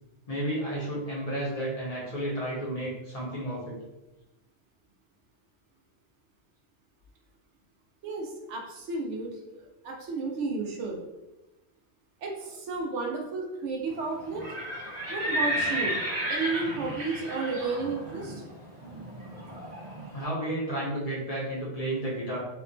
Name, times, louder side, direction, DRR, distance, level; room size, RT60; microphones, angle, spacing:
voice 1, 0.3-3.8 20.1-22.4, right 1 dB, 45° left, -6 dB, 0.6 m, -32 dB
voice 2, 8.0-9.4 9.8-11.0 12.2-14.4 15.1-16.0 16.3-18.4, right 3 dB, 85° right, 0 dB, 0.9 m, -32 dB
Livestock farm animals working animals, 14.3-20.1, right 1 dB, 45° right, 0.7 m, -33 dB
2.8 x 2.2 x 2.5 m, 1.0 s
omnidirectional pair, 1.2 m